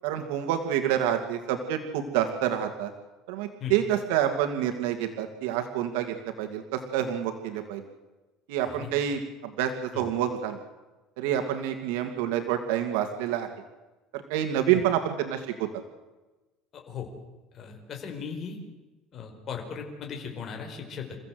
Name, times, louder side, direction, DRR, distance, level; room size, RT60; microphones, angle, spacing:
voice 1, 0.0-2.9 3.3-7.8 8.5-10.6 11.2-13.5 14.1-15.7, right 10 dB, 90° right, 5 dB, 2.4 m, -28 dB
voice 2, 17.5-18.6 19.1-21.2, left 6 dB, 35° left, 2 dB, 5.1 m, -37 dB
29.0 x 15.5 x 7.9 m, 1.1 s
cardioid pair, 165°, 0 cm